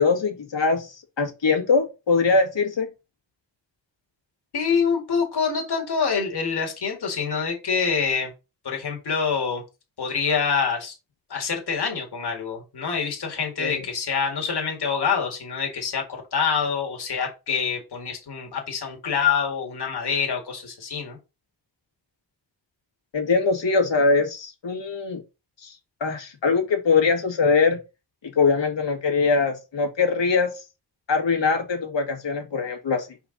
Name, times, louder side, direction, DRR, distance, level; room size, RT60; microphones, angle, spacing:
voice 1, 0.0-2.9 13.6-13.8 23.1-25.2 25.6-27.8 28.2-30.6 31.1-33.1, left 4 dB, 75° left, 2.1 m, -22 dB
voice 2, 4.5-8.3 8.6-9.6 10.0-10.9 11.3-16.0 16.3-21.2, left 6 dB, 60° left, 2.0 m, -26 dB
5.2 x 4.6 x 3.9 m
cardioid pair, 80°, 44 cm